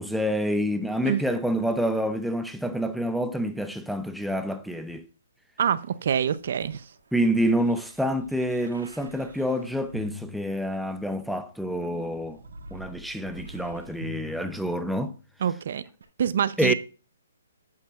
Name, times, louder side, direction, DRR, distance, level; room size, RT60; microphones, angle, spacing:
voice 1, 0.0-5.1 7.1-12.4 12.7-15.1 16.6-16.7, equal, ahead, 0.6 m, -27 dB
voice 2, 5.6-6.8 15.4-15.8 16.2-16.7, right 8 dB, 55° right, 0.6 m, -25 dB
sound 1, 6.4-11.2 11.9-15.3 16.0-16.1, equal, 85° right, 2.1 m, -45 dB
11.0 x 8.6 x 2.4 m
hypercardioid pair, 155°, 0 cm